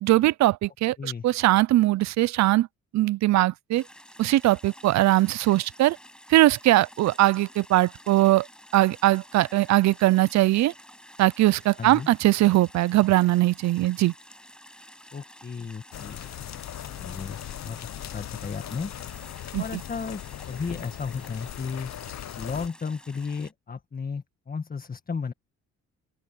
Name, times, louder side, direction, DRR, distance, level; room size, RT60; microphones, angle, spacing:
voice 1, 0.0-2.7 2.9-3.8 4.2-6.0 6.3-8.5 8.7-10.7 11.2-14.1 19.5-19.6, right 16 dB, 65° right, 0.5 m, -21 dB
sound 1, 3.8-23.5, equal, 5° left, 7.2 m, -50 dB
voice 2, 11.8-12.1 15.1-16.2 17.0-17.4 17.6-18.9 19.6-20.2 20.5-21.9 22.4-25.3, left 5 dB, 30° left, 1.6 m, -34 dB
sound 2, 15.9-22.7, left 12 dB, 60° left, 0.9 m, -39 dB
open air
cardioid pair, 90°, 30 cm